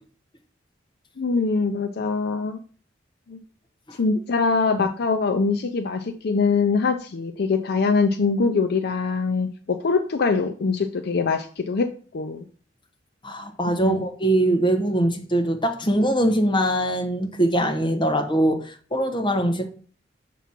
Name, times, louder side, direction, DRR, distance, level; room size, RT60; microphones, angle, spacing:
voice 1, 1.2-2.6 3.3-3.4 4.0-12.5 13.8-14.0, left 4 dB, 60° left, 0.5 m, -23 dB
voice 2, 13.2-19.7, right 1 dB, 25° left, 1.1 m, -22 dB
6.8 x 3.0 x 5.8 m
head